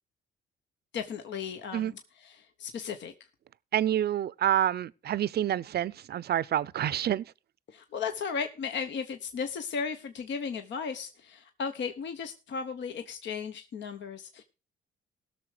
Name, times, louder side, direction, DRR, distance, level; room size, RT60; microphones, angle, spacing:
voice 1, 0.9-3.1 7.7-14.4, left 6 dB, 65° left, 1.0 m, -35 dB
voice 2, 3.7-7.3, right 11 dB, 55° right, 0.5 m, -28 dB
17.0 x 6.6 x 5.0 m
cardioid pair, 90°, 20 cm